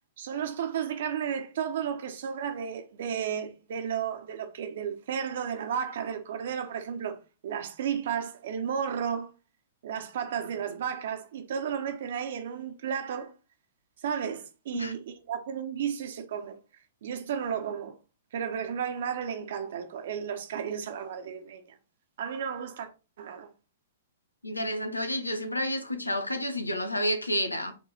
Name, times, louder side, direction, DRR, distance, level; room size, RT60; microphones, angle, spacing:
voice 1, 0.2-9.3 9.8-13.3 14.0-16.6 17.0-18.0 18.3-21.7 22.2-22.9 23.2-23.5, right 8 dB, 55° right, 1.3 m, -33 dB
voice 2, 24.4-27.7, equal, 85° left, 1.3 m, -30 dB
7.1 x 3.7 x 4.3 m
figure-of-eight pair, 110°, 0 cm